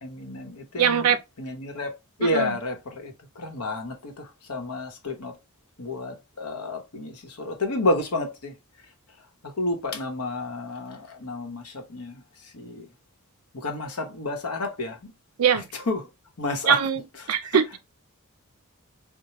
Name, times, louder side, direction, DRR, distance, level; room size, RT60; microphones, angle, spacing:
voice 1, 0.0-1.9 2.2-5.4 5.8-8.5 9.4-12.9 13.5-15.1 15.7-16.0 16.4-16.8 17.2-17.3, left 2 dB, 85° left, 1.0 m, -30 dB
voice 2, 0.8-1.2 2.2-2.5 15.4-15.7 16.7-17.0 17.3-17.8, right 7 dB, 80° right, 0.5 m, -21 dB
4.4 x 2.1 x 2.9 m
head